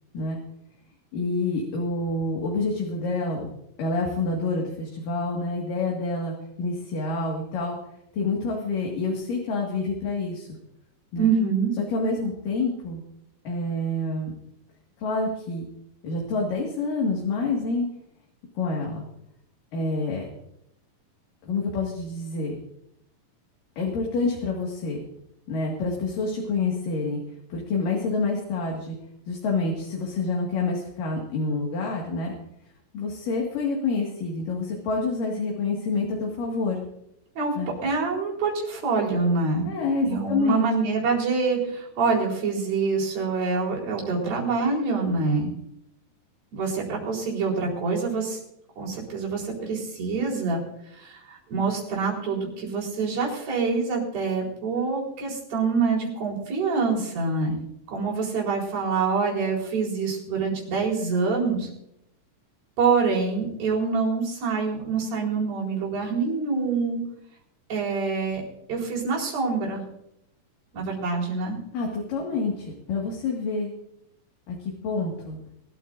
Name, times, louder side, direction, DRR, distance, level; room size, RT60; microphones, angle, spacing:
voice 1, 1.1-3.5 3.8-7.8 8.1-10.5 11.1-11.3 11.8-13.0 13.5-14.3 15.0-15.6 16.0-17.9 18.6-19.1 19.7-20.3 21.5-22.5 23.8-25.0 25.5-27.2 27.5-29.0 29.3-32.3 32.9-36.8 37.6-37.7 39.7-40.6 71.7-73.7 74.5-75.4, left 3 dB, 70° left, -1 dB, 3.6 m, -27 dB
voice 2, 11.2-11.7 37.4-37.6 37.8-39.7 40.0-45.5 46.5-48.4 48.8-50.6 50.9-57.6 57.9-61.7 62.8-67.0 67.7-68.4 68.7-69.8 70.7-71.6, right 4 dB, 85° right, -3 dB, 6.1 m, -26 dB
24.0 x 13.5 x 2.6 m, 0.78 s
omnidirectional pair, 4.1 m